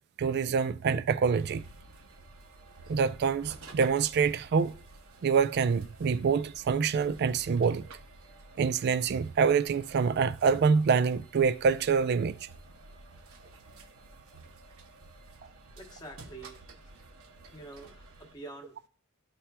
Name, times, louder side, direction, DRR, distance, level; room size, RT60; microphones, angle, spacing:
voice 1, 0.2-1.6 2.9-4.7 5.2-7.9 8.6-12.5, right 5 dB, 50° right, 0.3 m, -26 dB
sound 1, 1.4-18.3, right 2 dB, 70° right, 0.7 m, -52 dB
voice 2, 15.8-16.9 17.5-18.9, right 2 dB, 20° left, 0.9 m, -47 dB
12.5 x 4.3 x 2.2 m
head